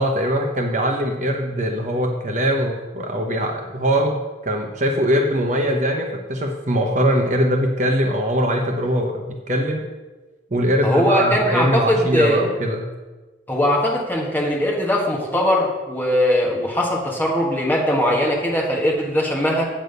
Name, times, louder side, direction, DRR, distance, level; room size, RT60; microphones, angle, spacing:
voice 1, 0.0-9.9 10.5-12.9, equal, 40° right, 2 dB, 0.9 m, -21 dB
voice 2, 10.8-12.4 13.5-19.6, equal, 10° left, -2 dB, 1.6 m, -20 dB
8.6 x 7.9 x 5.3 m, 1.2 s
head